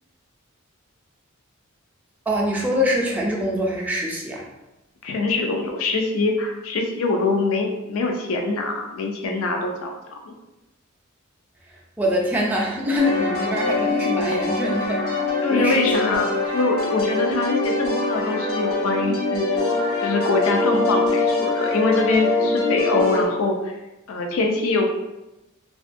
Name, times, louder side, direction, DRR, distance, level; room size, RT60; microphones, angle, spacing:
voice 1, 2.3-4.5 12.0-15.2 15.5-16.2, equal, 10° right, -3 dB, 0.3 m, -24 dB
voice 2, 5.0-10.2 15.4-19.6 20.0-23.8 24.1-24.9, left 3 dB, 70° left, 2 dB, 0.4 m, -23 dB
sound 1, 13.0-23.3, left 3 dB, 85° left, 0.9 m, -23 dB
2.5 x 2.3 x 2.5 m, 0.99 s
head